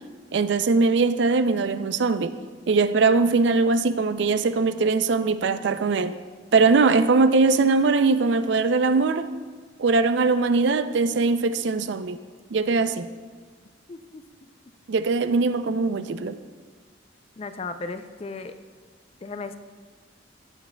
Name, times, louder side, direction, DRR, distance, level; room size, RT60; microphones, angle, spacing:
voice 1, 0.3-2.3 2.7-6.2 6.5-9.3 9.8-12.2 12.5-13.1 14.9-16.4, right 4 dB, 70° right, 0.4 m, -21 dB
voice 2, 13.9-14.2 17.4-18.5 19.2-19.6, left 3 dB, 30° left, 0.4 m, -35 dB
15.5 x 9.1 x 2.2 m
head